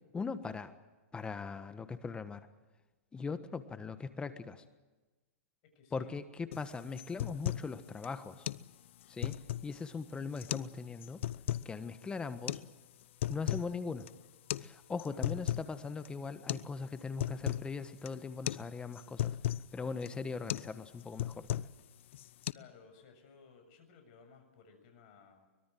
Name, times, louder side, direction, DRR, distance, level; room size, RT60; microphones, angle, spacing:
voice 1, 0.1-0.7 1.1-2.5 3.1-4.6 5.9-8.5 9.1-9.4 9.6-11.2 11.6-12.6 13.3-14.1 14.6-19.3 19.7-21.7, left 4 dB, 15° left, 12 dB, 1.4 m, -40 dB
voice 2, 5.6-6.1 15.1-15.2 22.2-25.5, left 6 dB, 45° left, 6 dB, 7.2 m, -59 dB
sound 1, 6.5-6.7 7.0-7.7 8.0-8.1 8.5-8.7 9.0-9.8 10.4-10.7 11.0-11.7 12.5-12.6 13.0-13.7 14.0-14.1 14.5-14.7 15.0-15.7 16.1-16.2 16.5-16.7 17.0-17.7 18.1-18.2 18.5-18.7 18.9-19.7 20.1-20.2 20.5-20.7 21.0-21.8 22.1-22.5, left 13 dB, 65° left, 0.7 m, -36 dB
24.0 x 22.0 x 7.7 m, 1.2 s
hypercardioid pair, 125°, 7 cm